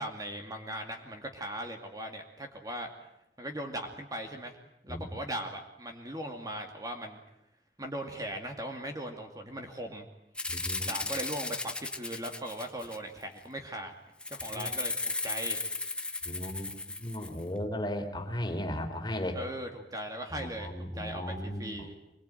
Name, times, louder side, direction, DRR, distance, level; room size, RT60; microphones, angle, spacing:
voice 1, 0.0-2.9 3.4-4.6 4.8-7.2 7.8-10.1 10.9-13.9 14.3-15.6 19.3-22.0, right 1 dB, 20° right, 4 dB, 2.3 m, -39 dB
Rattle (instrument), 10.4-13.2 14.2-17.4, left 3 dB, 5° left, 1.3 m, -35 dB
voice 2, 10.5-10.9 14.5-14.7 16.2-16.7 17.0-19.4 20.3-21.8, left 1 dB, 25° left, 4 dB, 3.6 m, -35 dB
25.0 x 22.5 x 9.1 m, 0.81 s
head